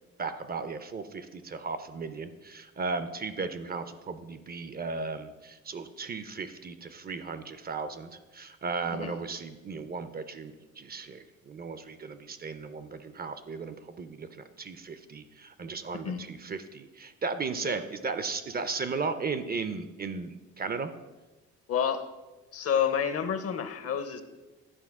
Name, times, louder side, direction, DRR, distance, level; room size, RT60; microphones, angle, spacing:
voice 1, 0.2-20.9, right 4 dB, 30° right, 11 dB, 0.4 m, -36 dB
voice 2, 8.9-9.2 16.0-16.3 17.6-17.8 21.7-22.1 22.5-24.2, left 8 dB, 50° left, 10 dB, 0.7 m, -29 dB
10.0 x 4.3 x 3.6 m, 1.2 s
cardioid pair, 90°, 30 cm